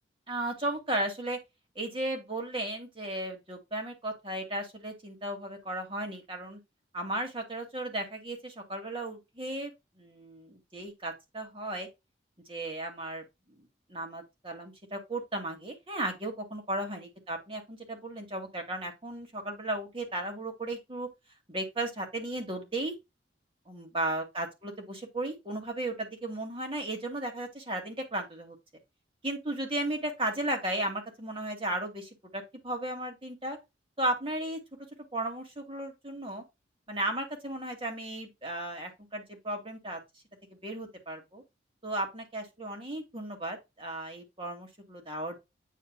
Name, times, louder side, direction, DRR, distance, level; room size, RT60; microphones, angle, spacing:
voice 1, 0.3-1.4 1.8-6.6 6.9-11.9 12.5-21.1 21.5-23.0 23.7-28.6 29.2-33.6 34.0-34.6 35.1-36.4 36.9-40.0 40.5-41.4 41.8-45.4, right 1 dB, 30° right, 2.4 m, -35 dB
9.5 x 4.6 x 2.3 m
head